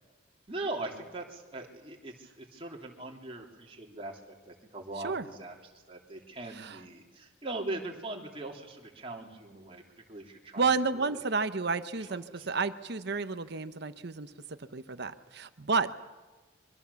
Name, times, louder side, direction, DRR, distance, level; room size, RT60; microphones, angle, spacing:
voice 1, 0.5-4.2 4.5-5.6 5.9-9.8 10.1-10.7 12.0-12.5, right 2 dB, 30° right, 0 dB, 3.2 m, -40 dB
voice 2, 10.6-15.9, right 4 dB, 55° right, 11 dB, 0.9 m, -31 dB
26.0 x 24.0 x 7.1 m, 1.2 s
head